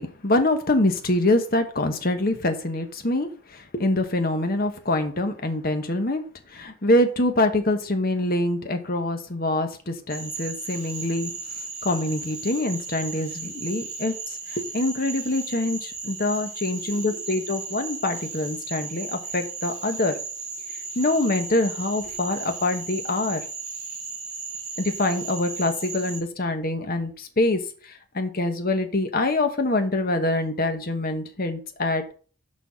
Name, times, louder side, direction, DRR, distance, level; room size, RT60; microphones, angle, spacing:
voice 1, 0.0-6.2 6.5-11.3 11.8-20.1 20.9-23.4 24.8-32.1, left 2 dB, 45° left, 6 dB, 1.1 m, -25 dB
Cricket / Frog, 10.1-26.2, right 4 dB, 35° right, 3.3 m, -35 dB
6.5 x 5.5 x 5.7 m, 0.41 s
head